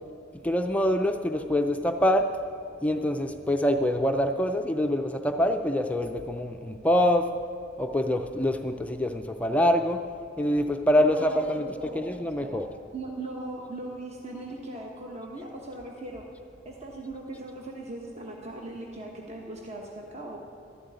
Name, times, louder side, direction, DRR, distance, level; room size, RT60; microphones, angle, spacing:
voice 1, 0.4-2.3 2.8-7.3 7.8-10.0 10.4-12.6, left 1 dB, 5° left, 5 dB, 0.4 m, -25 dB
voice 2, 11.0-12.6 12.9-16.2 16.6-20.4, right 2 dB, 35° right, -1 dB, 1.2 m, -39 dB
12.5 x 7.6 x 9.2 m, 2.6 s
head